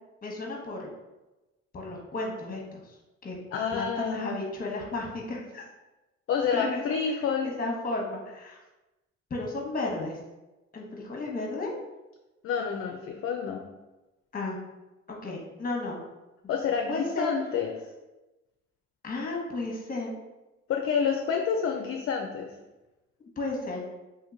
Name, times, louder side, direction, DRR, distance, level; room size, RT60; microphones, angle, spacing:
voice 1, 0.2-0.9 1.7-2.9 3.2-3.4 3.7-5.6 6.5-6.8 7.1-8.6 9.3-10.2 10.7-11.7 14.3-14.6 15.1-16.0 16.9-17.3 19.0-20.1 23.4-23.9, left 2 dB, 30° left, -1 dB, 1.0 m, -33 dB
voice 2, 3.5-4.4 6.3-7.5 12.4-13.6 16.5-17.8 20.7-22.5, left 6 dB, 45° left, 3 dB, 0.4 m, -28 dB
2.9 x 2.7 x 3.8 m, 1.0 s
cardioid pair, 90°, 30 cm